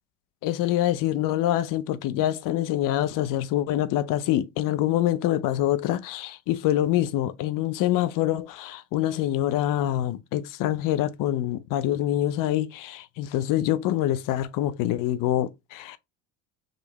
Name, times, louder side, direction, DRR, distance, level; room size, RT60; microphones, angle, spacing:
voice 1, 0.4-16.0, left 13 dB, 55° left, 0.6 m, -25 dB
5.1 x 3.1 x 3.0 m
hypercardioid pair, 80°, 39 cm